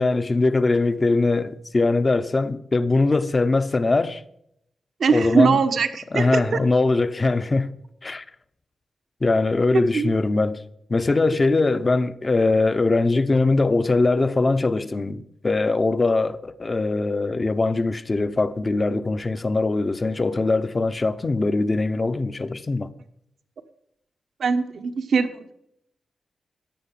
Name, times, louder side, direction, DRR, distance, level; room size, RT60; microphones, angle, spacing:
voice 1, 0.0-4.2 5.1-5.6 6.1-7.7 8.0-8.2 9.2-10.6 10.9-22.9, left 3 dB, 35° left, 0.9 m, -21 dB
voice 2, 5.0-6.6 9.9-10.1 24.4-25.5, right 5 dB, 70° right, 1.2 m, -21 dB
14.5 x 9.9 x 5.9 m
cardioid pair, 85°, 0 cm